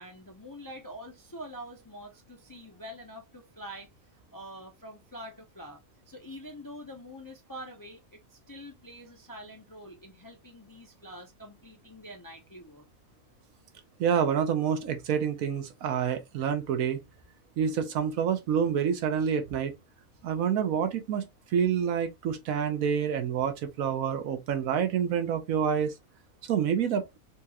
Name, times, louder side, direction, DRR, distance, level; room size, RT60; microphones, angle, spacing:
voice 1, 0.0-5.8 6.1-12.8, equal, 30° left, 0.4 m, -45 dB
voice 2, 14.0-17.0 17.6-19.7 20.2-25.9 26.5-27.1, right 7 dB, 85° right, 1.2 m, -27 dB
4.3 x 2.4 x 2.8 m
omnidirectional pair, 1.4 m